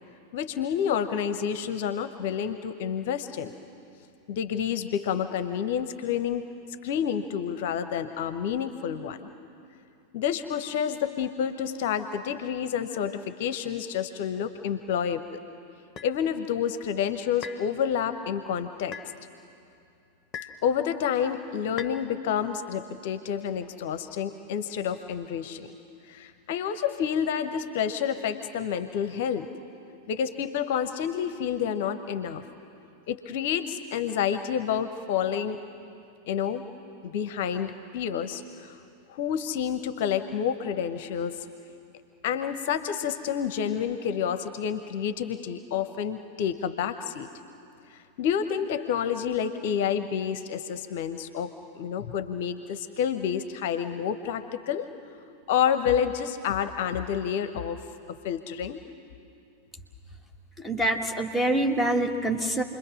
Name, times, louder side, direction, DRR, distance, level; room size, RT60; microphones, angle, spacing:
voice 1, 0.3-3.5 4.3-6.4 6.8-9.2 10.1-15.4 16.0-19.0 20.6-25.7 26.1-29.5 30.1-32.4 33.1-35.6 36.3-36.6 37.0-38.8 39.1-41.4 42.2-47.3 47.9-54.9 55.5-57.8 58.1-58.8, left 8 dB, 50° left, 11 dB, 0.9 m, -29 dB
sound 1, 16.0-16.1 17.4-17.7 18.9-19.1 20.3-20.6 21.8-22.0, left 7 dB, 25° left, 1.3 m, -39 dB
voice 2, 60.6-62.6, right 1 dB, 5° right, 3 dB, 2.0 m, -25 dB
28.5 x 22.0 x 6.3 m, 2.6 s
figure-of-eight pair, 90°, 0 cm